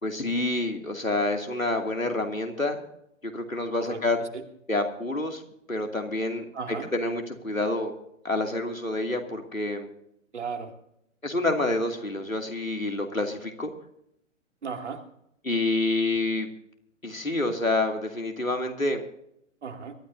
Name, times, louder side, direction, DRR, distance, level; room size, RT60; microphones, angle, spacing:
voice 1, 0.0-2.8 3.2-4.2 4.7-5.4 5.7-6.5 6.9-7.9 8.2-9.9 11.2-13.7 15.4-16.5 17.0-19.0, left 2 dB, 90° left, 3 dB, 2.6 m, -28 dB
voice 2, 3.8-4.4 6.5-6.9 10.3-10.7 14.6-15.0 19.6-19.9, right 5 dB, 60° right, 4 dB, 2.6 m, -35 dB
24.0 x 13.0 x 2.7 m, 0.76 s
figure-of-eight pair, 125°, 39 cm